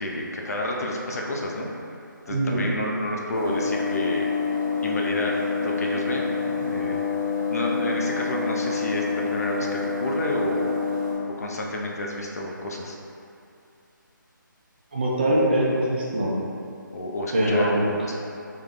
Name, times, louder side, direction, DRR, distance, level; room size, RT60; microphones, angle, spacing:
voice 1, 0.0-1.7 2.3-4.3 4.8-7.0 7.5-10.8 11.4-13.0 16.9-18.1, left 1 dB, 50° left, -1 dB, 0.4 m, -30 dB
voice 2, 2.3-2.6 14.9-16.4 17.3-17.9, right 1 dB, 30° right, -5 dB, 0.4 m, -22 dB
sound 1, 3.3-11.1, left 4 dB, 10° right, 1.1 m, -27 dB
3.4 x 2.1 x 3.7 m, 2.5 s
figure-of-eight pair, 160°, 11 cm